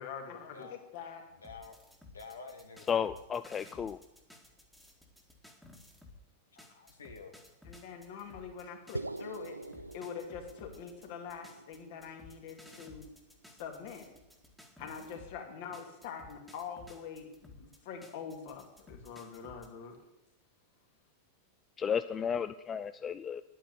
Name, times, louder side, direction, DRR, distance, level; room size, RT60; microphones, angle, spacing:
voice 1, 0.0-1.2 7.6-9.6 9.9-13.1 13.6-14.1 14.8-20.0, left 7 dB, 50° left, 3 dB, 2.6 m, -44 dB
voice 2, 1.4-1.8 2.1-2.9 6.5-7.3, left 4 dB, 70° left, 4 dB, 1.7 m, -49 dB
sound 1, 1.4-6.2 6.6-15.4 15.7-19.7, left 2 dB, ahead, 2.0 m, -55 dB
voice 3, 2.9-4.0 21.8-23.4, left 7 dB, 20° left, 12 dB, 0.4 m, -33 dB
sound 2, 8.9-13.3, right 2 dB, 85° right, 0.4 m, -45 dB
10.5 x 9.3 x 8.4 m, 0.92 s
figure-of-eight pair, 90°, 0 cm